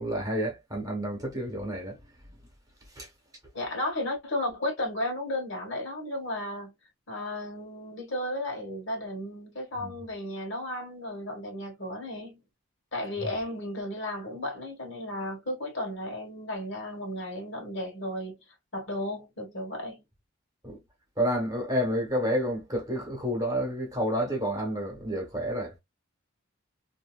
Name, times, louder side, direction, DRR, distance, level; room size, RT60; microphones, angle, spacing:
voice 1, 0.0-2.0 2.9-3.1 9.8-9.9 20.6-20.8 21.2-25.8, equal, 15° right, 1.2 m, -30 dB
voice 2, 3.5-6.7 7.1-12.4 12.9-18.4 18.7-20.0, left 1 dB, 65° left, 1.4 m, -34 dB
2.8 x 2.6 x 2.3 m
head